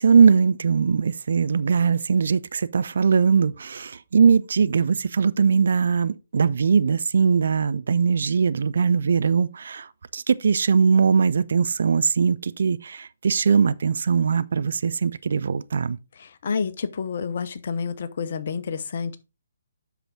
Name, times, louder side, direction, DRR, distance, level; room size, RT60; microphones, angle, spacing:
voice 1, 0.0-16.0, right 6 dB, 55° right, 0.5 m, -20 dB
voice 2, 16.2-19.2, left 5 dB, 45° left, 0.8 m, -29 dB
8.0 x 6.0 x 3.7 m
figure-of-eight pair, 135°, 0 cm